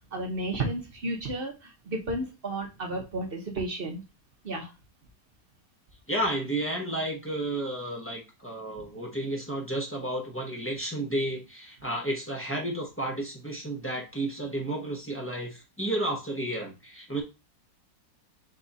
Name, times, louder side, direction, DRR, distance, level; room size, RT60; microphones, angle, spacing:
voice 1, 0.1-4.0 4.4-4.7, right 2 dB, 45° right, 1 dB, 0.8 m, -32 dB
voice 2, 6.1-17.2, right 1 dB, 15° left, -1 dB, 0.6 m, -32 dB
5.3 x 2.4 x 4.0 m, 0.28 s
omnidirectional pair, 1.9 m